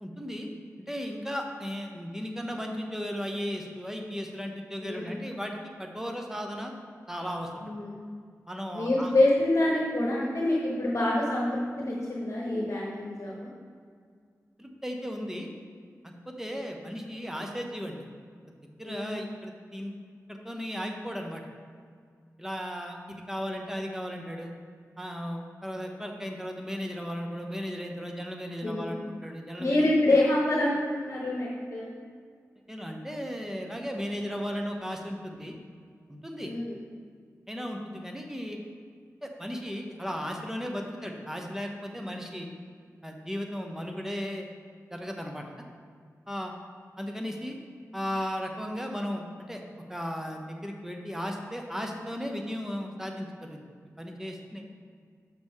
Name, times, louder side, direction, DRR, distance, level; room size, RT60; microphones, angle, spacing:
voice 1, 0.0-0.5 0.9-6.7 7.1-7.7 8.5-9.1 14.6-15.5 16.3-18.0 18.8-19.9 20.3-21.4 22.4-24.5 25.0-29.8 32.7-35.6 36.1-36.5 37.5-38.6 39.2-42.5 43.0-44.5 44.9-45.4 46.3-46.5 47.0-47.6 47.9-49.6 49.9-53.6 54.0-54.6, equal, 5° right, 2 dB, 0.9 m, -35 dB
voice 2, 4.8-5.2 7.6-8.0 8.7-13.5 18.8-19.2 28.6-29.0 29.6-31.9 36.4-36.8, left 1 dB, 55° left, -4 dB, 1.1 m, -26 dB
6.6 x 6.0 x 3.6 m, 2.1 s
cardioid pair, 45°, 6 cm